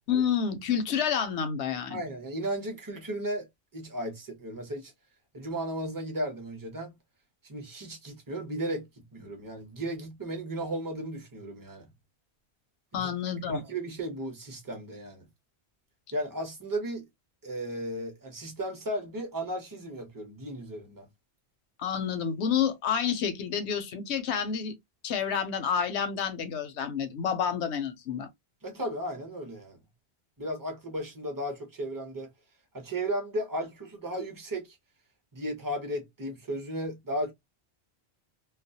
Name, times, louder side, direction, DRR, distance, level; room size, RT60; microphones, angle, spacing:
voice 1, 0.1-2.0 12.9-13.6 21.8-24.7 25.0-28.3, left 7 dB, 85° left, 0.9 m, -29 dB
voice 2, 1.9-3.5 3.7-4.9 5.3-6.9 7.4-8.9 9.1-11.9 12.9-13.1 13.5-15.3 16.1-17.1 17.4-21.1 28.6-29.8 30.4-32.3 32.7-34.8 35.3-37.3, right 1 dB, 20° right, 0.7 m, -35 dB
2.3 x 2.1 x 2.6 m
omnidirectional pair, 1.1 m